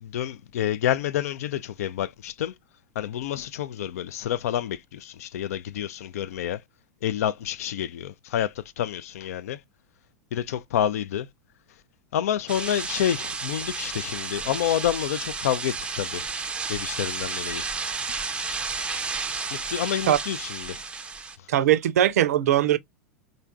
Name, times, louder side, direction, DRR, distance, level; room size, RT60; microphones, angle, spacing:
voice 1, 0.0-2.5 3.0-6.6 7.0-8.5 8.8-9.6 10.3-11.3 12.1-16.2 16.7-17.6 19.5-20.7, left 10 dB, 65° left, 0.4 m, -28 dB
sound 1, 12.5-21.4, right 4 dB, 10° right, 0.5 m, -32 dB
voice 2, 21.5-22.8, right 11 dB, 65° right, 0.5 m, -20 dB
3.8 x 3.2 x 2.3 m
figure-of-eight pair, 95°, 9 cm